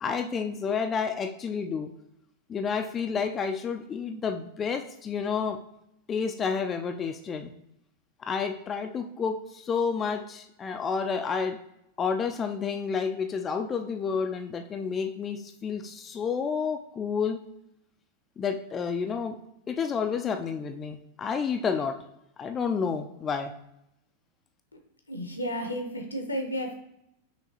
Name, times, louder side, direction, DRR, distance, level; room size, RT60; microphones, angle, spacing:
voice 1, 0.0-1.9 2.5-5.6 6.1-7.5 8.2-11.6 12.0-17.4 18.4-19.4 19.7-22.0 22.4-23.5, left 6 dB, 25° left, 6 dB, 0.3 m, -30 dB
voice 2, 25.1-26.7, equal, 80° left, 4 dB, 0.8 m, -32 dB
5.8 x 3.0 x 2.8 m, 0.79 s
figure-of-eight pair, 90°, 0 cm